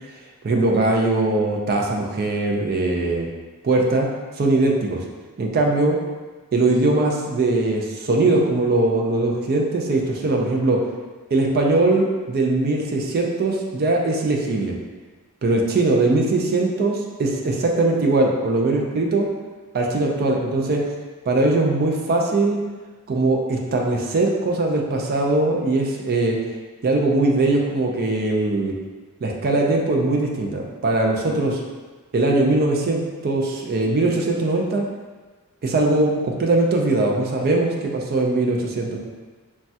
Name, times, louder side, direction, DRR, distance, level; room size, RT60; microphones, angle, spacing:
voice 1, 0.4-3.3 3.6-4.1 4.4-5.0 5.4-6.0 6.5-10.8 11.3-14.8 15.4-19.3 19.7-20.8 21.3-22.6 23.1-26.4 26.8-28.8 29.2-31.6 32.1-34.8 35.6-39.0, right 2 dB, 45° right, 0 dB, 0.4 m, -20 dB
3.1 x 2.2 x 2.7 m, 1.3 s
head